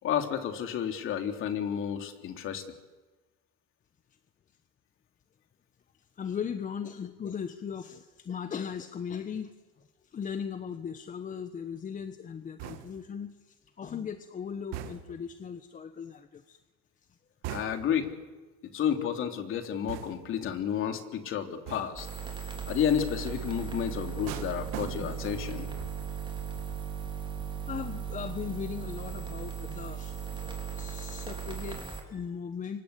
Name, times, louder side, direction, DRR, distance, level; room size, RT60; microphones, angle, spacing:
voice 1, 0.0-2.6 17.5-18.1 18.7-22.1 22.7-25.7, left 9 dB, 45° left, 6 dB, 3.4 m, -31 dB
voice 2, 6.2-16.6 18.7-18.8 25.0-25.2 26.1-26.2 27.7-32.8, left 7 dB, 25° left, 9 dB, 1.2 m, -38 dB
sound 1, 12.6-13.2 14.7-15.3 17.4-18.0 19.9-20.4 21.7-22.1 24.3-25.4 25.8-26.1, right 11 dB, 65° right, 2.5 m, -41 dB
sound 2, 22.0-32.0, right 7 dB, 15° right, 4.5 m, -37 dB
28.0 x 25.5 x 8.4 m, 1.2 s
supercardioid pair, 125°, 29 cm